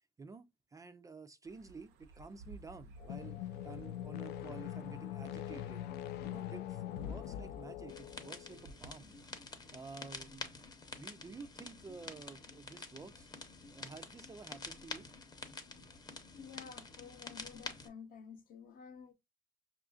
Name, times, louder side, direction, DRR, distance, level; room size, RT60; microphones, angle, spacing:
voice 1, 0.2-3.4 3.6-5.9 6.2-9.1 9.7-10.5 10.9-13.3 13.7-15.1, right 4 dB, 20° right, 0.3 m, -51 dB
sound 1, 1.4-9.8, right 3 dB, 80° right, 0.6 m, -58 dB
sound 2, 3.0-8.6, left 11 dB, 75° left, 0.4 m, -43 dB
sound 3, 7.9-17.9, left 3 dB, 25° left, 0.7 m, -48 dB
voice 2, 16.3-19.1, left 6 dB, 55° left, 0.8 m, -51 dB
5.5 x 2.4 x 2.3 m
cardioid pair, 110°, 17 cm